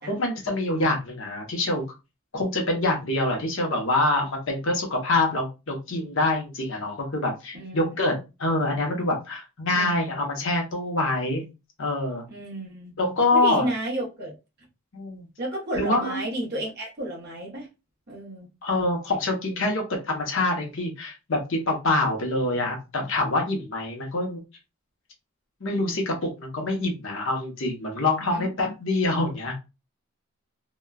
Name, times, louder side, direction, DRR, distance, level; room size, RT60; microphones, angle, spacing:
voice 1, 0.1-1.8 2.3-11.4 11.8-12.2 13.0-13.7 14.9-15.3 15.8-16.2 18.6-24.4 25.6-29.5, left 2 dB, 60° left, 0.8 m, -25 dB
voice 2, 7.5-8.0 9.7-10.1 12.3-13.0 13.3-14.3 15.4-17.7 18.1-18.5 28.3-28.5, right 1 dB, 45° right, 1.0 m, -32 dB
2.9 x 2.2 x 2.3 m
head